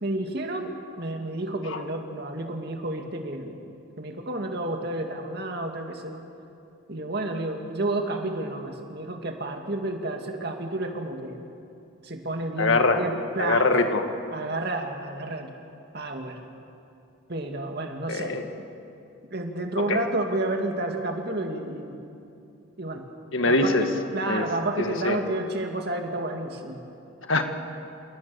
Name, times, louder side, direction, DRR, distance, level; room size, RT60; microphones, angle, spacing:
voice 1, 0.0-3.6 4.0-6.2 6.9-11.4 12.0-13.7 14.3-15.5 15.9-16.4 17.3-18.4 19.3-22.0 22.8-23.1 23.4-26.8, right 2 dB, 50° right, 3 dB, 2.2 m, -30 dB
voice 2, 12.6-13.0 13.4-14.1 18.1-18.4 19.9-20.0 23.3-23.8 24.2-24.4 24.8-25.2 27.3-27.4, left 3 dB, 70° left, 6 dB, 1.8 m, -23 dB
28.0 x 17.5 x 7.1 m, 2.6 s
head